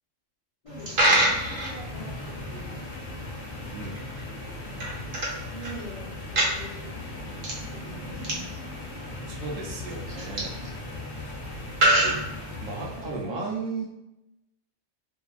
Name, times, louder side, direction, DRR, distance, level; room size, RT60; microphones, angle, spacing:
voice 1, 0.6-2.9 5.5-7.1 7.7-8.4 13.0-13.5, equal, 40° left, -7 dB, 0.6 m, -43 dB
sound 1, 0.7-13.3, left 3 dB, 80° left, 1.0 m, -39 dB
Coin (dropping), 0.7-12.9, right 1 dB, 50° right, 0.7 m, -29 dB
voice 2, 3.7-4.1 9.3-10.5 12.0-12.1 12.6-13.8, right 4 dB, 85° right, 0 dB, 1.0 m, -34 dB
2.7 x 2.5 x 2.3 m, 0.91 s
omnidirectional pair, 1.3 m